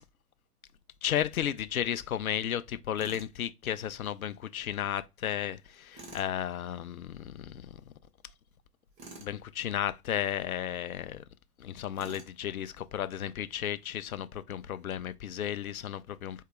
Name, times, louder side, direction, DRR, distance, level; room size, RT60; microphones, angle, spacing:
voice 1, 1.0-7.8 9.2-11.2 11.6-16.4, left 10 dB, 65° left, 0.6 m, -34 dB
Tools, 3.0-3.3 5.9-6.3 9.0-9.3 11.9-12.4, right 3 dB, 15° right, 0.7 m, -48 dB
4.6 x 2.8 x 3.5 m
figure-of-eight pair, 110°, 46 cm